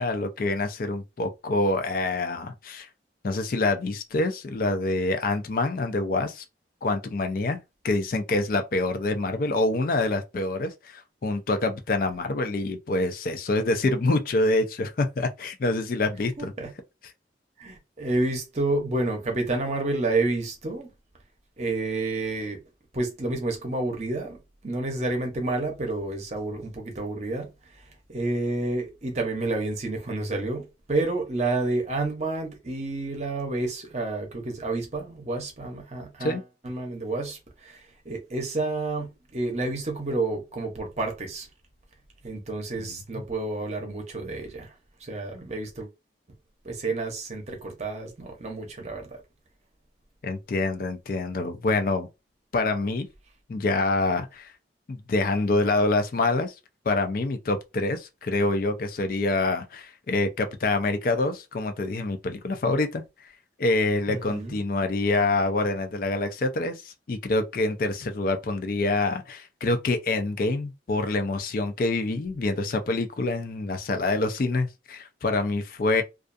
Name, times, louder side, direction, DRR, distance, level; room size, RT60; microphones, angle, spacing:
voice 1, 0.0-2.9 3.2-6.4 6.8-7.6 7.8-16.5 36.2-36.4 50.2-52.1 52.5-53.1 53.5-54.5 54.9-56.5 56.9-63.0 63.6-76.0, left 2 dB, 50° left, 0.4 m, -26 dB
voice 2, 16.4-16.7 17.6-20.9 21.6-22.6 22.9-24.4 24.6-27.5 28.1-36.4 36.6-37.8 38.0-41.5 42.2-44.7 45.0-45.9 46.6-49.1 64.1-64.5, right 2 dB, 40° right, 0.7 m, -29 dB
2.4 x 2.3 x 2.5 m
head